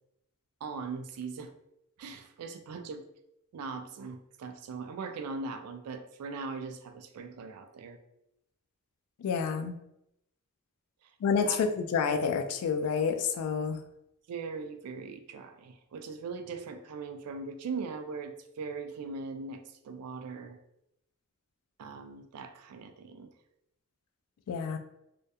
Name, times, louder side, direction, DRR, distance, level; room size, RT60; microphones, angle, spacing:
voice 1, 0.6-1.5 2.0-3.0 3.5-8.0 11.0-11.1 11.5-11.6 14.3-20.6 21.8-23.3, right 4 dB, 80° right, 7 dB, 0.3 m, -40 dB
voice 2, 9.2-9.8 11.2-13.8 24.5-24.8, left 6 dB, 75° left, 12 dB, 0.3 m, -29 dB
2.7 x 2.1 x 2.2 m, 0.82 s
head